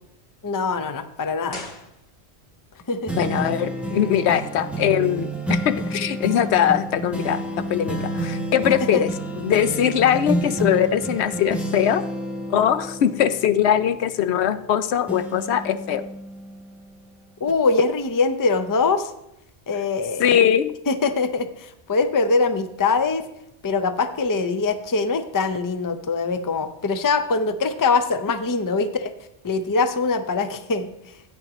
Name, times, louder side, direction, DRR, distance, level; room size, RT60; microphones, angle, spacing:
voice 1, 0.4-1.6 2.9-3.2 8.9-9.1 17.4-19.1 19.7-20.4 20.9-23.2 23.6-29.1 29.4-30.9, left 4 dB, 25° left, 9 dB, 0.4 m, -23 dB
sound 1, 1.5-2.6 2.8-2.9, left 2 dB, 45° left, 1.2 m, -39 dB
sound 2, 3.1-14.7 15.1-17.0 17.5-17.6, right 1 dB, ahead, 0.9 m, -30 dB
voice 2, 3.2-9.1 9.4-12.0 12.5-16.1 20.2-20.8, left 9 dB, 75° left, 12 dB, 0.8 m, -21 dB
14.0 x 9.2 x 3.1 m, 0.82 s
omnidirectional pair, 1.2 m